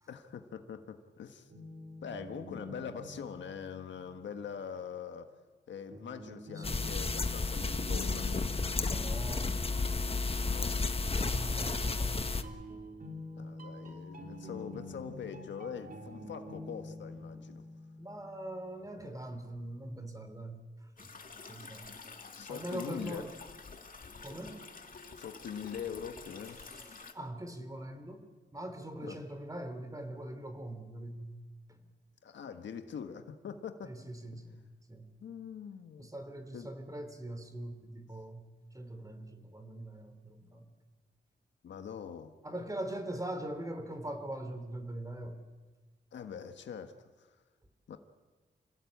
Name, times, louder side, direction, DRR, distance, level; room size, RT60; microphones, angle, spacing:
voice 1, 0.1-1.5 2.0-5.3 5.7-8.5 10.4-10.8 13.4-17.6 22.3-23.2 25.1-26.6 29.0-29.2 32.2-33.9 35.2-36.1 36.5-36.7 41.6-42.3 46.1-47.4 47.9-48.0, left 7 dB, 90° left, 7 dB, 1.5 m, -43 dB
sound 1, 1.5-4.6 5.9-10.5 11.3-19.0, left 2 dB, 50° right, 3.8 m, -47 dB
sound 2, 6.6-12.4, left 3 dB, 30° left, 1.4 m, -32 dB
voice 2, 8.9-9.5 10.3-10.5 11.1-12.3 18.0-21.1 21.5-21.9 22.5-23.3 24.2-24.6 26.7-28.3 28.5-31.4 31.7-31.9 33.8-35.1 36.0-38.5 38.7-40.7 42.4-45.4, right 1 dB, 20° right, 8 dB, 3.7 m, -42 dB
sound 3, 21.0-27.1, left 4 dB, 50° left, 2.3 m, -49 dB
27.5 x 17.0 x 8.6 m, 1.3 s
cardioid pair, 70°, 18 cm